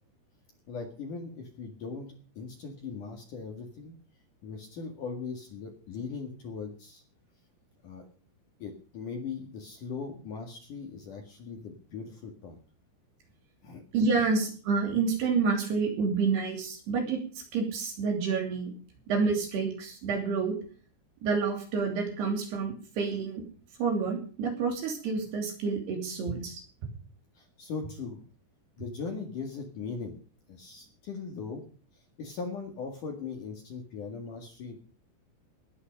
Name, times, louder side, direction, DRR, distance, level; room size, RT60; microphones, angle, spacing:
voice 1, 0.7-2.1 2.4-3.9 4.4-7.0 7.8-8.1 8.6-12.6 13.6-13.8 14.2-14.3 27.4-28.2 28.8-30.2 30.5-31.6 31.9-34.8, left 5 dB, 55° left, 3 dB, 2.8 m, -39 dB
voice 2, 13.9-17.2 17.5-18.7 19.1-20.6 21.2-23.4 23.8-26.6, right 4 dB, 60° right, 2 dB, 4.8 m, -28 dB
19.5 x 9.8 x 5.3 m, 0.42 s
omnidirectional pair, 5.6 m